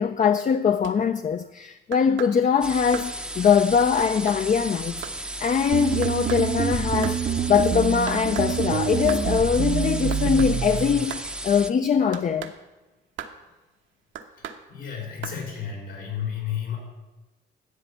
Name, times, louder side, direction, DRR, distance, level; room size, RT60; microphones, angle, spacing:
voice 1, 0.0-12.5, left 7 dB, 40° left, 0.5 m, -22 dB
sound 1, 0.8-1.0 1.9-2.4 2.9-3.1 4.0-4.4 5.0-5.2 6.0-6.5 7.0-7.2 8.1-8.5 9.1-9.3 10.1-10.5 11.1-11.3 12.1-12.5 13.2-13.4 14.1-14.6 15.2-15.4, right 8 dB, 75° right, 1.1 m, -37 dB
sound 2, 2.6-11.7, right 1 dB, 5° right, 0.6 m, -35 dB
sound 3, 5.7-11.1, right 8 dB, 45° right, 0.6 m, -26 dB
voice 2, 14.7-16.8, left 8 dB, 80° left, 4.3 m, -32 dB
11.5 x 8.0 x 6.6 m
cardioid pair, 90°, 20 cm